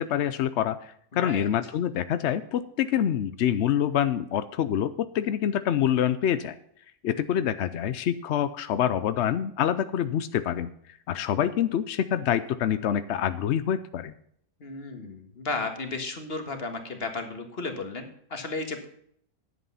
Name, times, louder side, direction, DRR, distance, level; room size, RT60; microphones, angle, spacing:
voice 1, 0.0-6.6 7.0-14.1, left 10 dB, 70° left, 12 dB, 0.6 m, -26 dB
voice 2, 1.1-1.5 14.6-18.9, left 3 dB, 35° left, 6 dB, 1.8 m, -34 dB
10.5 x 8.1 x 5.6 m, 0.66 s
omnidirectional pair, 1.8 m